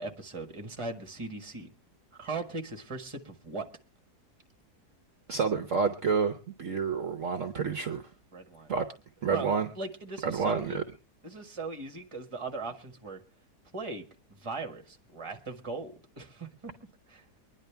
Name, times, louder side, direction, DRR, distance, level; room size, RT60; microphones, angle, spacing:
voice 1, 0.0-1.7 2.2-3.7 8.3-8.7 9.3-10.8 11.2-13.2 13.7-14.0 14.3-16.7 17.1-17.4, right 3 dB, 20° right, 5 dB, 1.4 m, -39 dB
voice 2, 5.3-8.1 8.7-8.9 9.2-9.7 10.2-10.8, right 5 dB, 55° right, 8 dB, 1.1 m, -29 dB
24.0 x 10.5 x 3.4 m, 0.30 s
omnidirectional pair, 1.7 m